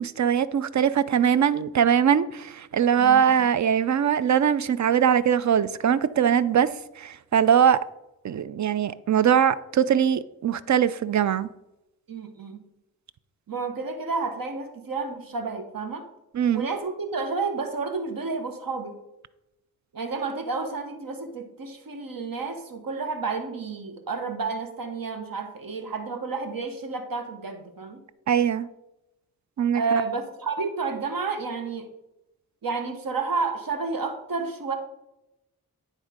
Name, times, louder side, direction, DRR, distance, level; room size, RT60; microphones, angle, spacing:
voice 1, 0.0-7.8 8.2-11.5 16.3-16.7 28.3-28.7 29.6-29.8, right 8 dB, 50° right, 0.5 m, -21 dB
voice 2, 3.0-3.5 12.1-12.6 13.5-16.1 16.5-19.0 19.9-28.0 29.7-31.9 32.6-34.7, right 4 dB, 70° right, 1.2 m, -30 dB
9.7 x 3.7 x 5.0 m
cardioid pair, 45°, 36 cm